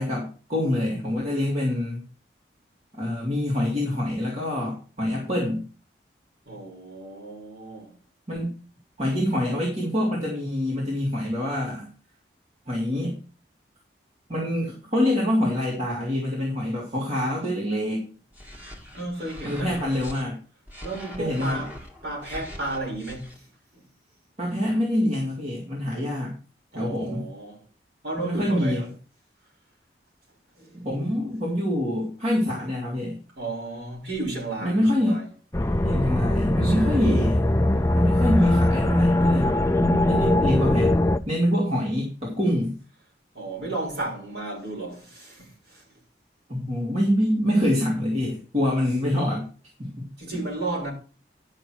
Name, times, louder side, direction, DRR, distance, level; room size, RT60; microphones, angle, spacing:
voice 1, 0.0-2.0 2.9-5.6 8.3-8.5 9.0-11.9 12.7-13.2 14.3-18.1 19.4-20.4 21.2-21.6 24.4-26.3 26.7-27.2 28.2-28.9 30.7-33.2 34.6-35.2 35.8-37.4 37.9-40.9 41.3-42.8 46.5-49.5 49.8-50.1, left 1 dB, 40° right, 2.9 m, -25 dB
voice 2, 6.5-7.9 18.9-19.8 20.8-21.7 22.0-23.5 23.7-23.8 26.7-27.6 28.0-28.9 30.6-30.8 33.4-35.3 36.6-37.1 43.3-45.8 50.2-50.9, right 2 dB, 75° right, 6.5 m, -33 dB
sound 1, 18.3-20.2 20.7-23.4, left 1 dB, 10° right, 2.0 m, -42 dB
sound 2, 35.5-41.2, left 1 dB, 15° left, 0.5 m, -21 dB
11.5 x 6.4 x 4.6 m
head